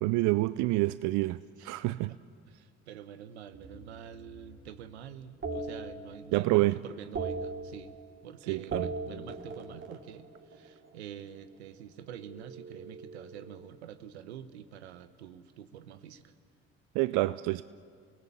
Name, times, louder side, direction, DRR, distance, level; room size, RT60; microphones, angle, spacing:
voice 1, 0.0-1.4 1.6-2.1 6.3-6.8 8.5-8.9 16.9-17.6, right 20 dB, 65° right, 15 dB, 0.6 m, -27 dB
voice 2, 1.6-2.2 2.5-7.9 8.2-16.3, right 9 dB, 85° right, 12 dB, 1.1 m, -47 dB
sound 1, 3.5-4.8 5.4-6.6 6.9-8.3 8.6-10.9 12.1-13.9, right 4 dB, 40° right, 3.1 m, -40 dB
29.0 x 18.5 x 8.5 m, 2.1 s
hypercardioid pair, 55°, 32 cm